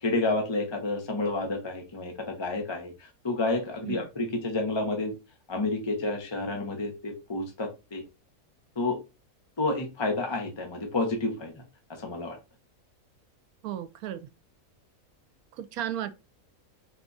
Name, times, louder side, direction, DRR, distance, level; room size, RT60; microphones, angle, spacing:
voice 1, 0.0-2.9 3.2-5.1 5.5-8.0 8.8-9.0 9.6-11.5 11.9-12.4, left 2 dB, 25° left, 0.6 m, -30 dB
voice 2, 13.6-14.3 15.6-16.1, right 11 dB, 80° right, 1.1 m, -34 dB
4.4 x 2.4 x 3.9 m
omnidirectional pair, 1.5 m